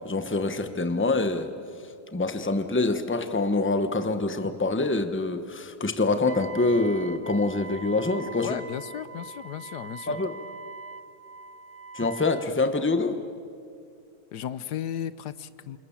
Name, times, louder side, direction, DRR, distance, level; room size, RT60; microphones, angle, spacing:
voice 1, 0.0-1.5 2.1-8.5 10.1-10.3 11.9-13.2, left 3 dB, 10° left, 9 dB, 1.0 m, -25 dB
Wind instrument woodwind instrument, 6.3-12.5, right 4 dB, 45° right, 0.9 m, -42 dB
voice 2, 8.3-10.2 14.3-15.8, left 10 dB, 80° left, 15 dB, 1.4 m, -35 dB
28.0 x 28.0 x 7.3 m, 2.4 s
omnidirectional pair, 1.7 m